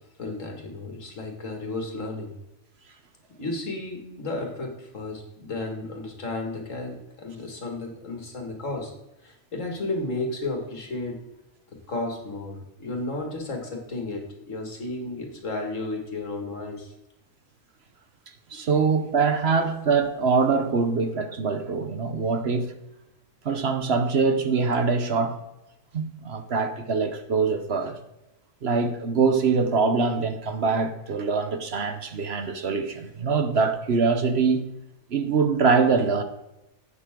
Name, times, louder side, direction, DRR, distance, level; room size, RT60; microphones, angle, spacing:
voice 1, 0.2-2.3 3.4-8.9 9.2-11.2 11.9-16.9, left 2 dB, 70° left, 2.5 m, -33 dB
voice 2, 18.5-22.7 23.4-25.4 25.9-28.0 28.6-34.6 35.1-36.2, right 4 dB, 55° right, 1.1 m, -23 dB
11.0 x 8.6 x 3.7 m
omnidirectional pair, 1.4 m